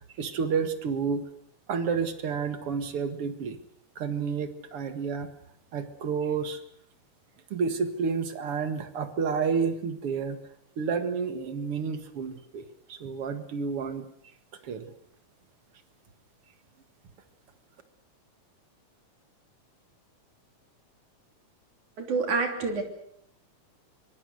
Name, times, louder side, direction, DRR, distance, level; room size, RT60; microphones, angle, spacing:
voice 1, 0.2-1.2 1.7-3.6 4.0-5.3 5.7-6.6 7.5-10.4 10.8-14.1 14.6-14.9, right 5 dB, 50° right, 9 dB, 2.4 m, -30 dB
voice 2, 22.1-22.8, right 4 dB, 70° right, 4 dB, 4.5 m, -27 dB
25.5 x 23.5 x 6.5 m, 0.69 s
omnidirectional pair, 3.6 m